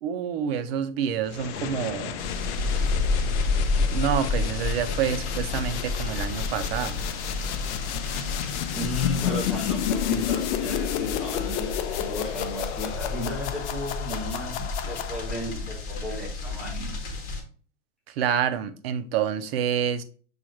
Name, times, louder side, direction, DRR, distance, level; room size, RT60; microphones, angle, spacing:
voice 1, 0.0-2.3 3.9-7.0 18.1-20.0, right 8 dB, 55° right, 0.6 m, -28 dB
sound 1, 1.3-15.6, left 10 dB, 65° left, 0.5 m, -32 dB
sound 2, 2.2-17.4, left 3 dB, 25° left, 0.9 m, -30 dB
voice 2, 8.7-17.0, left 2 dB, ahead, 0.4 m, -34 dB
6.3 x 2.5 x 2.9 m
supercardioid pair, 165°, 37 cm